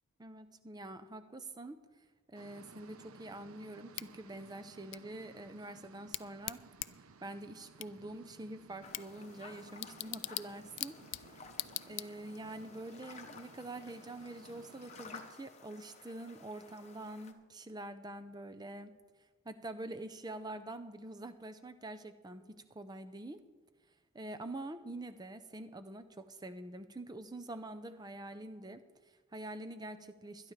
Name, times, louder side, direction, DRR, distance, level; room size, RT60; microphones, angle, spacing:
voice 1, 0.2-1.8 2.3-6.6 7.2-11.4 11.9-18.9 19.4-23.4 24.1-30.5, right 2 dB, 20° right, 9 dB, 0.6 m, -46 dB
sound 1, 2.3-15.3, right 4 dB, 80° right, 0.7 m, -58 dB
Bicycle / Tick, 3.9-12.5, left 16 dB, 55° left, 0.4 m, -45 dB
sound 2, 8.8-17.3, left 4 dB, 30° left, 0.9 m, -55 dB
21.0 x 11.0 x 3.3 m, 1.3 s
head